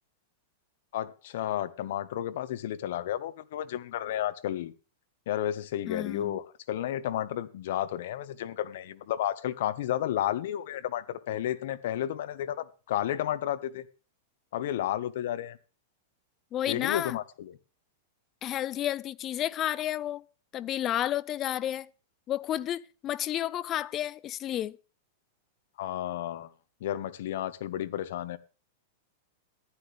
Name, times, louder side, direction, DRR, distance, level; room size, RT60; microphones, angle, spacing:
voice 1, 0.9-4.7 5.3-13.8 14.5-15.6 16.7-17.6 25.8-26.5 26.8-28.4, left 11 dB, 65° left, 1.4 m, -32 dB
voice 2, 5.9-6.4 16.5-17.2 18.4-20.2 20.5-21.9 22.3-24.8, left 12 dB, 25° left, 0.5 m, -31 dB
14.5 x 11.5 x 3.5 m
supercardioid pair, 160°, 0 cm